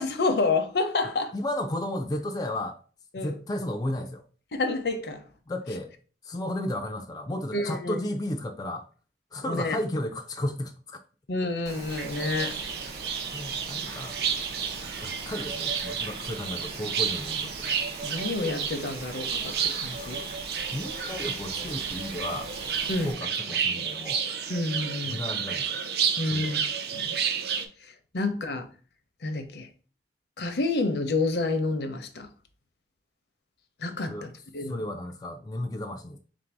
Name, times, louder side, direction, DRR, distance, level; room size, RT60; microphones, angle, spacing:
voice 1, 0.0-1.3 3.1-3.3 4.5-5.2 7.5-8.0 9.4-9.8 11.3-12.5 18.0-20.2 22.9-23.1 24.5-25.2 26.2-26.6 26.9-27.2 27.8-28.7 29.2-29.7 30.4-32.3 33.8-34.8, left 3 dB, 70° left, 0.6 m, -29 dB
voice 2, 1.3-2.8 3.2-4.2 5.5-5.9 6.2-8.9 9.3-11.0 13.3-14.2 15.0-17.6 20.7-22.5 23.0-24.2 25.1-25.8 26.3-26.6 34.1-34.3 34.6-36.2, left 1 dB, 20° left, 0.3 m, -33 dB
Rain, 11.6-23.1, right 2 dB, 40° right, 1.1 m, -42 dB
sound 1, 11.9-27.7, right 7 dB, 60° right, 0.5 m, -31 dB
3.7 x 2.6 x 4.5 m
head